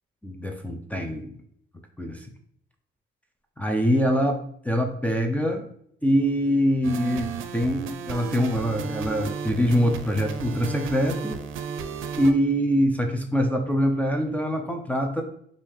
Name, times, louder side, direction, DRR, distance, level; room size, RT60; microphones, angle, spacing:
voice 1, 0.2-1.3 2.0-2.3 3.6-4.4 4.6-5.6 6.0-11.4 12.2-15.2, equal, 5° left, 3 dB, 0.6 m, -24 dB
sound 1, 6.8-12.3, right 6 dB, 85° right, 0.5 m, -34 dB
5.3 x 2.6 x 3.3 m, 0.67 s
cardioid pair, 90°, 20 cm